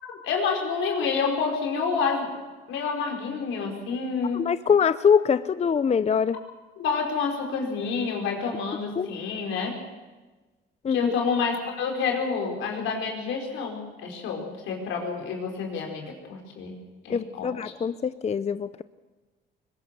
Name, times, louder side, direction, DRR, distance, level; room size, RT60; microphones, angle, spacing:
voice 1, 0.0-2.3 2.7-4.4 6.8-9.8 10.9-16.8 17.0-17.5, left 5 dB, 85° left, 1 dB, 4.8 m, -28 dB
voice 2, 4.3-6.4 9.0-9.1 10.8-11.1 17.1-18.8, left 6 dB, 35° left, 14 dB, 0.6 m, -23 dB
22.0 x 20.5 x 6.8 m, 1.2 s
cardioid pair, 90°, 20 cm